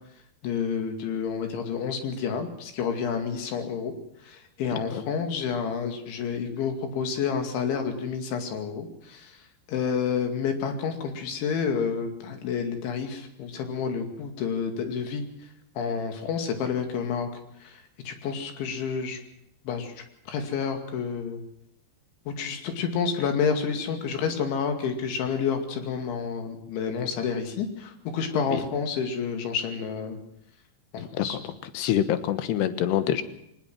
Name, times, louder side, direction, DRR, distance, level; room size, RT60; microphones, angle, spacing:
voice 1, 0.4-3.9 4.3-9.3 9.7-15.2 15.8-17.3 17.6-17.8 18.1-19.2 19.7-19.9 20.3-21.4 22.3-30.2 30.9-31.4, left 6 dB, 90° left, 6 dB, 4.7 m, -29 dB
voice 2, 31.0-31.4 31.7-33.2, left 11 dB, 70° left, 11 dB, 3.2 m, -26 dB
23.0 x 20.0 x 6.1 m, 0.77 s
omnidirectional pair, 5.2 m